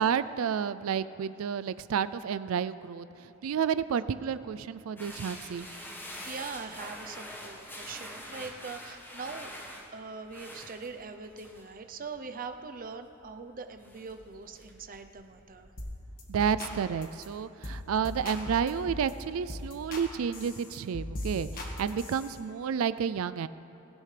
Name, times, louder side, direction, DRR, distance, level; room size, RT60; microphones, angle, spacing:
voice 1, 0.0-5.7 16.3-23.5, right 7 dB, 75° right, 15 dB, 0.4 m, -30 dB
sound 1, 5.0-16.6, left 1 dB, 10° left, 1.4 m, -46 dB
voice 2, 5.6-9.5 9.9-15.7, right 4 dB, 40° right, 7 dB, 0.7 m, -42 dB
sound 2, 15.8-16.7 17.0-17.3 17.6-17.8 18.0-19.1 19.5-20.1 20.3-22.4, left 1 dB, 45° left, 1.6 m, -38 dB
17.0 x 16.5 x 3.3 m, 3.0 s
head